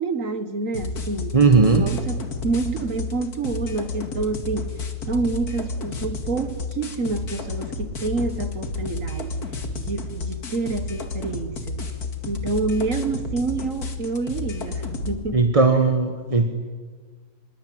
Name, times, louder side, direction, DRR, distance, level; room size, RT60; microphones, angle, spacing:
voice 1, 0.0-1.4 1.7-4.7 5.1-9.4 9.8-11.8 12.3-15.5, right 3 dB, 55° right, 1.6 m, -28 dB
sound 1, 0.7-15.2, left 2 dB, 65° left, 2.6 m, -31 dB
voice 2, 1.3-1.9 15.3-16.5, right 4 dB, 20° right, 1.3 m, -17 dB
26.0 x 22.0 x 9.3 m
omnidirectional pair, 1.8 m